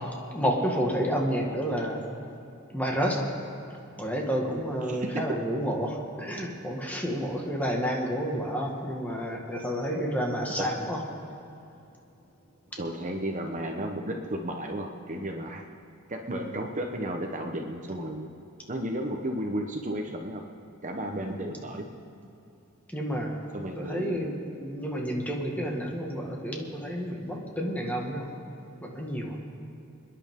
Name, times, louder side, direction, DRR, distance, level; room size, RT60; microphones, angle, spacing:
voice 1, 0.3-2.1 2.7-3.3 4.0-5.9 6.2-11.0 21.2-21.4 22.9-23.3 23.8-28.3 28.8-29.4, equal, 10° left, -1 dB, 1.8 m, -30 dB
voice 2, 4.8-5.2 10.6-10.7 12.8-15.6 16.1-18.3 18.7-20.4 20.8-21.9 23.5-24.3, right 1 dB, 35° right, 2 dB, 1.0 m, -33 dB
28.0 x 10.5 x 3.8 m, 2.8 s
head